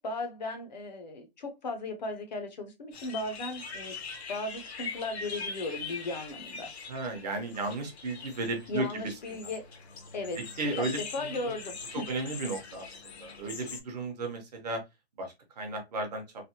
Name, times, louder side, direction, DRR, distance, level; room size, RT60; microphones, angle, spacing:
voice 1, 0.0-4.0 4.3-6.7 8.7-9.6 10.1-10.4 10.7-10.9 11.1-12.0, left 2 dB, 40° left, 0.6 m, -36 dB
sound 1, 2.9-13.8, left 5 dB, 75° left, 0.9 m, -42 dB
voice 2, 6.9-9.4 10.6-11.5 12.1-14.8 15.2-16.2, right 2 dB, 40° right, 0.8 m, -34 dB
3.3 x 2.1 x 2.7 m
hypercardioid pair, 175°, 33 cm